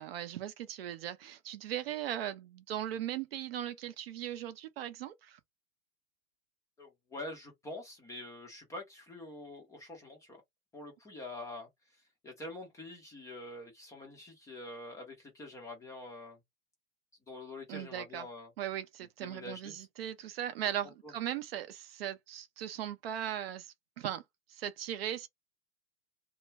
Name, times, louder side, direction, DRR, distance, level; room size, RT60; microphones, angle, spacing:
voice 1, 0.0-5.4 17.7-18.3 18.6-24.2 24.5-25.3, right 11 dB, 45° right, 0.5 m, -38 dB
voice 2, 6.8-10.4 10.7-11.7 12.2-16.4 17.3-18.5 19.2-19.8 21.0-21.1, left 2 dB, 5° left, 0.5 m, -45 dB
2.2 x 2.1 x 3.2 m
hypercardioid pair, 110°, 45 cm